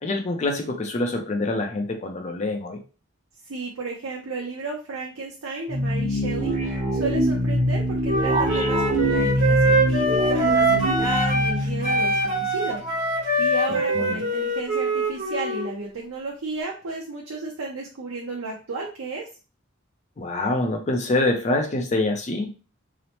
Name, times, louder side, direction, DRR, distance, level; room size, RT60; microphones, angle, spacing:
voice 1, 0.0-2.8 13.7-14.2 20.2-22.5, left 2 dB, 35° left, 3 dB, 0.4 m, -25 dB
voice 2, 3.5-12.8 13.4-19.3, right 3 dB, 90° right, -2 dB, 0.6 m, -33 dB
sound 1, 5.7-12.9, equal, 40° right, 0.9 m, -24 dB
Wind instrument woodwind instrument, 8.0-11.6 11.8-15.7, right 1 dB, 60° right, 1.3 m, -23 dB
2.9 x 2.0 x 2.9 m, 0.33 s
head